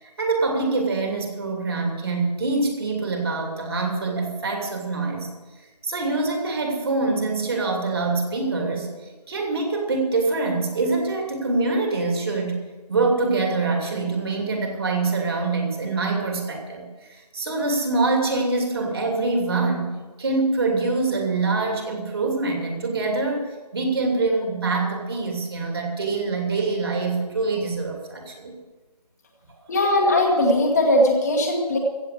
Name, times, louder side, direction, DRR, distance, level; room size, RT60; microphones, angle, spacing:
voice 1, 0.0-5.3 5.8-8.9 9.3-12.6 12.9-19.9 20.2-28.5 29.6-29.7, right 3 dB, 35° right, 2 dB, 2.6 m, -25 dB
voice 2, 29.7-31.8, left 1 dB, 25° left, 0 dB, 1.5 m, -19 dB
15.5 x 7.6 x 8.2 m, 1.2 s
figure-of-eight pair, 160°, 21 cm